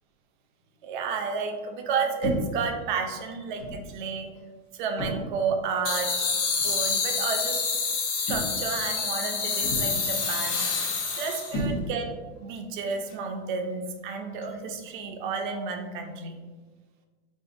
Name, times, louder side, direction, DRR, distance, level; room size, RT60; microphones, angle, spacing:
voice 1, 0.8-4.3 4.7-6.3 6.6-7.6 8.3-10.6 11.1-12.1 12.4-16.4, right 5 dB, 45° right, 4 dB, 0.4 m, -31 dB
sound 1, 2.2-2.7 3.6-3.9 5.0-5.5 6.6-6.8 8.3-8.8 9.6-10.1 11.5-12.2, equal, 30° left, 0.5 m, -32 dB
sound 2, 5.8-11.6, left 5 dB, 90° left, 0.8 m, -28 dB
3.8 x 2.5 x 2.5 m, 1.3 s
supercardioid pair, 160°, 35 cm